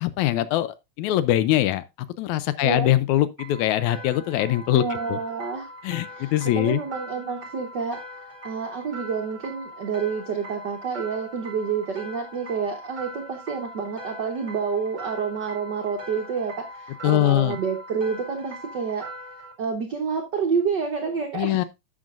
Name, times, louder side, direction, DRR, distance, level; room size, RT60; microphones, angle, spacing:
voice 1, 0.0-1.8 2.2-4.8 5.1-5.2 5.8-6.8 17.0-17.6 21.3-21.6, left 14 dB, 80° left, 1.8 m, -22 dB
sound 1, 3.4-19.5, equal, 20° right, 1.5 m, -41 dB
voice 2, 4.7-5.7 6.1-8.0 8.4-19.1 19.6-21.6, right 5 dB, 75° right, 0.9 m, -28 dB
11.5 x 7.6 x 2.4 m
omnidirectional pair, 3.6 m